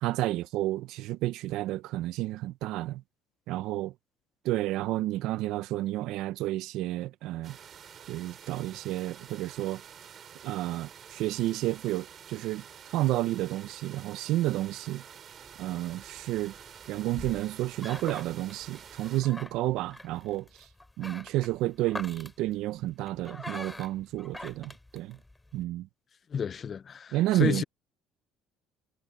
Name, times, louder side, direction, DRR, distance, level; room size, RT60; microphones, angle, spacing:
voice 1, 0.0-3.0 3.5-3.9 4.4-7.6 8.1-9.8 10.4-12.6 12.9-15.0 15.6-16.5 16.9-20.5 21.0-25.2 25.5-25.9 27.1-27.6, right 16 dB, 70° right, 0.9 m, -31 dB
sound 1, 7.4-19.2, right 8 dB, 45° right, 4.4 m, -49 dB
sound 2, 15.3-25.6, left 2 dB, 10° left, 4.1 m, -46 dB
voice 2, 26.3-27.6, left 7 dB, 40° left, 0.6 m, -31 dB
supercardioid pair, 90°, 0 cm